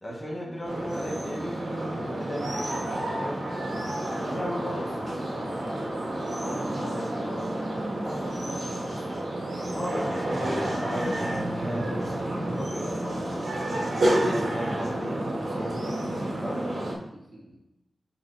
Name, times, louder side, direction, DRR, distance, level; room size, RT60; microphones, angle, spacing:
voice 1, 0.0-3.4 4.2-5.8 6.4-7.5 8.0-8.5 9.7-16.9, equal, 20° left, -4 dB, 1.6 m, -36 dB
sound 1, 0.6-16.9, right 1 dB, 70° right, 1.9 m, -30 dB
voice 2, 8.2-9.0 17.1-17.6, right 1 dB, 45° right, -5 dB, 2.3 m, -43 dB
9.4 x 4.4 x 2.7 m, 0.92 s
wide cardioid pair, 110°, 0 cm